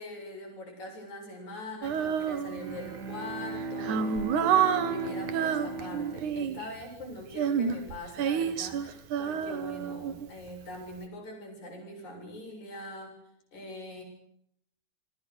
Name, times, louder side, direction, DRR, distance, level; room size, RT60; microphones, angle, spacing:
voice 1, 0.0-13.2 13.5-14.0, left 1 dB, 65° left, 1 dB, 8.9 m, -42 dB
Female singing, 1.8-2.9 3.5-6.7 7.3-10.5, right 7 dB, 75° right, 2.9 m, -29 dB
Bowed string instrument, 2.5-7.4, right 3 dB, 35° right, 2.1 m, -38 dB
28.5 x 23.0 x 6.4 m, 0.74 s
omnidirectional pair, 3.6 m